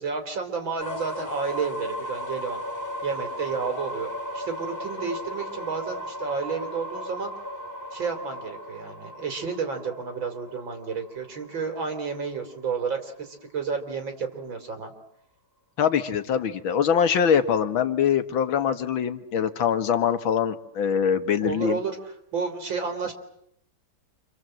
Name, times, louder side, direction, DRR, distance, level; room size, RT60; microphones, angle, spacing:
voice 1, 0.0-2.6 3.0-7.3 7.9-14.9 21.4-21.9 22.3-23.1, right 5 dB, 75° right, 5 dB, 3.9 m, -31 dB
sound 1, 0.8-12.6, equal, 10° left, 1.2 m, -36 dB
voice 2, 15.8-21.8, left 8 dB, 85° left, 9 dB, 2.2 m, -23 dB
28.0 x 25.5 x 7.6 m, 0.76 s
omnidirectional pair, 2.1 m